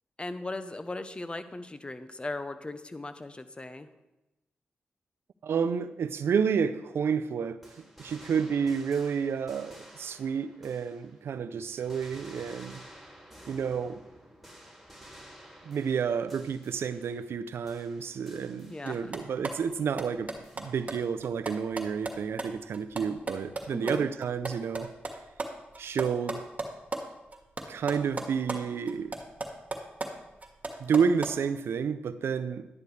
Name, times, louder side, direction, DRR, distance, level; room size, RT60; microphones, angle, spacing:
voice 1, 0.2-3.9 18.7-19.2 23.7-24.1, left 2 dB, 25° left, 0.9 m, -38 dB
voice 2, 5.4-12.8 13.5-14.0 15.6-24.9 25.8-26.4 27.7-29.2 30.8-32.7, right 6 dB, 75° right, 0.6 m, -30 dB
sound 1, 7.6-11.3 11.7-17.4 17.7-19.3 20.4-21.2, equal, ahead, 3.4 m, -52 dB
sound 2, 18.9-23.9 24.2-27.0 27.3-28.6 28.9-31.3, right 2 dB, 35° right, 1.8 m, -36 dB
11.0 x 10.5 x 3.3 m
cardioid pair, 55°, 4 cm